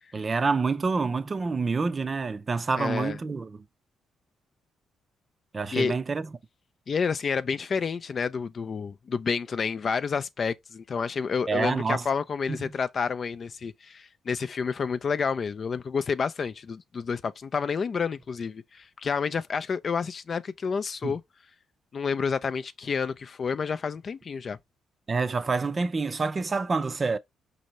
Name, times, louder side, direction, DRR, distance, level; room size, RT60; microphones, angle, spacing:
voice 1, 0.1-3.6 5.5-6.3 11.5-12.0 12.6-12.7 21.0-21.1 25.1-27.2, right 4 dB, 30° right, 0.5 m, -27 dB
voice 2, 2.8-3.2 5.7-6.0 6.9-21.2 21.9-24.6, left 5 dB, 45° left, 0.4 m, -29 dB
5.2 x 2.8 x 3.1 m
cardioid pair, 90°, 0 cm